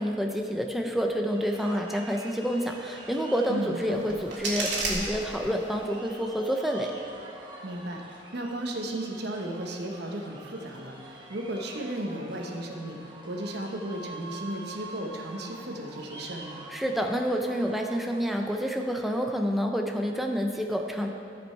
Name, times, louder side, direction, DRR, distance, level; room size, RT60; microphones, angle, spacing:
voice 1, 0.0-7.0 16.7-21.1, equal, ahead, 2 dB, 0.4 m, -28 dB
sound 1, 1.2-19.2, right 2 dB, 25° right, 1.2 m, -46 dB
voice 2, 3.5-4.2 7.6-16.6, right 1 dB, 65° right, 2 dB, 1.0 m, -35 dB
sound 2, 3.8-5.8, right 2 dB, 85° right, 1.8 m, -33 dB
13.5 x 5.3 x 4.5 m, 2.6 s
head